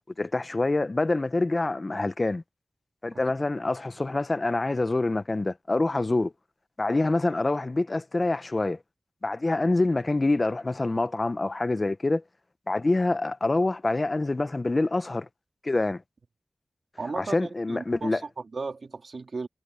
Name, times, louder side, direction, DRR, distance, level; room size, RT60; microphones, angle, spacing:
voice 1, 0.2-2.4 3.0-6.3 6.8-8.8 9.2-12.2 12.7-15.3 15.6-16.0 17.2-18.2, left 2 dB, 40° left, 0.8 m, -26 dB
voice 2, 17.0-19.5, right 4 dB, 75° right, 3.3 m, -36 dB
wide cardioid pair, 55°, 0 cm